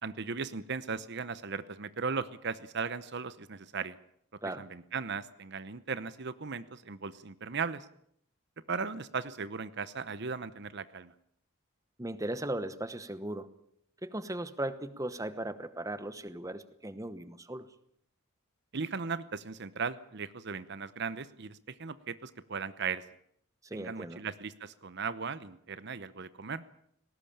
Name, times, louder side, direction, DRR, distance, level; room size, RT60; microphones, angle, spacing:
voice 1, 0.0-4.0 4.6-7.9 8.7-11.1 18.7-23.0 23.7-26.6, right 5 dB, 50° right, 15 dB, 0.8 m, -37 dB
voice 2, 12.0-13.5 14.0-17.7 23.6-24.2, right 1 dB, 15° right, 13 dB, 1.0 m, -37 dB
19.5 x 18.0 x 8.7 m, 0.69 s
head